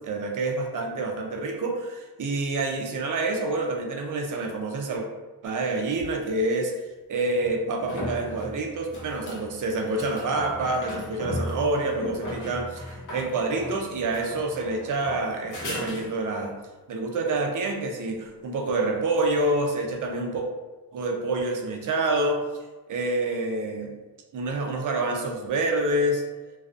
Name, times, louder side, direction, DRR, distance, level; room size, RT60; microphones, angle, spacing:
voice 1, 0.0-5.1 5.4-6.7 7.1-16.6 16.9-20.5 20.9-22.4 22.9-24.0 24.3-26.2, right 2 dB, 50° right, 2 dB, 0.5 m, -27 dB
sound 1, 6.0-6.1 7.4-16.5 19.9-20.0, left 1 dB, 50° left, 0.8 m, -37 dB
2.3 x 2.3 x 2.4 m, 1.2 s
cardioid pair, 105°, 40 cm